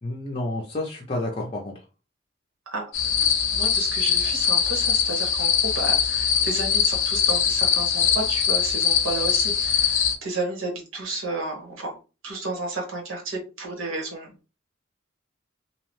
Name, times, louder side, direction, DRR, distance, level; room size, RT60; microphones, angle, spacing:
voice 1, 0.0-1.7, left 2 dB, 25° left, -2 dB, 0.5 m, -30 dB
sound 1, 2.9-10.2, left 7 dB, 75° left, 0.6 m, -22 dB
voice 2, 3.2-12.0 12.2-14.3, right 2 dB, 90° right, 0 dB, 1.1 m, -32 dB
2.8 x 2.0 x 3.0 m, 0.31 s
head